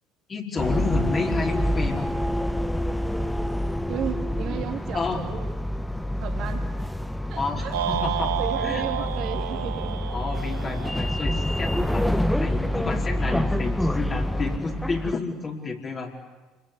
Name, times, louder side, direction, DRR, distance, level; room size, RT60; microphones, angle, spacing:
voice 1, 0.3-2.1 4.9-5.2 7.4-8.3 8.6-9.1 10.1-16.1, left 4 dB, 35° left, 0 dB, 4.7 m, -30 dB
sound 1, 0.6-15.1, left 1 dB, 5° left, 1.4 m, -27 dB
voice 2, 3.9-5.5 6.2-6.6 7.3-7.7 8.0-10.0, right 9 dB, 55° right, 6 dB, 3.1 m, -34 dB
sound 2, 7.7-12.0, right 11 dB, 80° right, 0.8 m, -31 dB
29.0 x 22.0 x 8.8 m, 1.1 s
hypercardioid pair, 65°, 0 cm